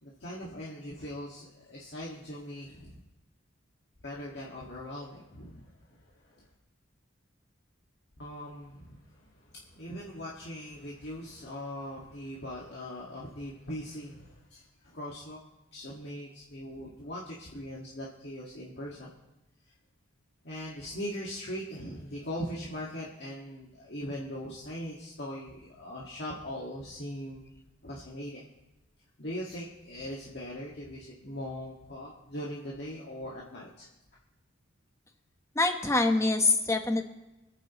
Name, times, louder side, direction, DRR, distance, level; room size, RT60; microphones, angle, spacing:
voice 1, 0.0-3.0 4.0-6.5 8.2-15.4 15.7-19.1 20.4-27.4 27.8-28.5 29.2-33.9, equal, 55° left, -5 dB, 1.9 m, -40 dB
voice 2, 35.5-37.0, left 3 dB, 15° left, 5 dB, 1.0 m, -25 dB
26.0 x 9.0 x 3.1 m, 0.99 s
head